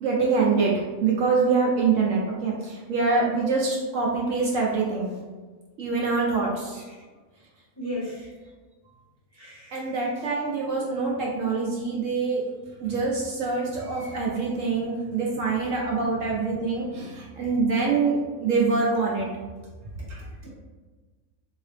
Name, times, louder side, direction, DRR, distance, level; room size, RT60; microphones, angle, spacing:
voice 1, 0.0-5.1 5.8-6.8 9.7-12.4 12.8-19.3 20.1-20.2, right 4 dB, 65° right, -3 dB, 1.0 m, -25 dB
voice 2, 6.5-6.9 7.8-8.3 9.3-10.3 10.7-10.8 20.4-20.5, left 1 dB, 10° left, -7 dB, 1.0 m, -37 dB
3.8 x 2.8 x 3.2 m, 1.3 s
omnidirectional pair, 1.6 m